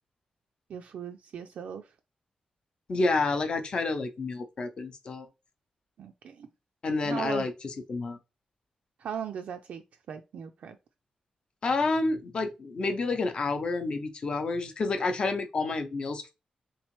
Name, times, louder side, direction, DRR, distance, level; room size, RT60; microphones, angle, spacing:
voice 1, 0.7-1.9 6.0-6.5 7.0-7.5 9.0-9.8 10.1-10.8, right 8 dB, 75° right, 0.3 m, -38 dB
voice 2, 2.9-5.3 6.8-8.2 11.6-16.3, left 3 dB, 40° left, 0.6 m, -29 dB
3.6 x 3.0 x 3.0 m
wide cardioid pair, 175°, 2 cm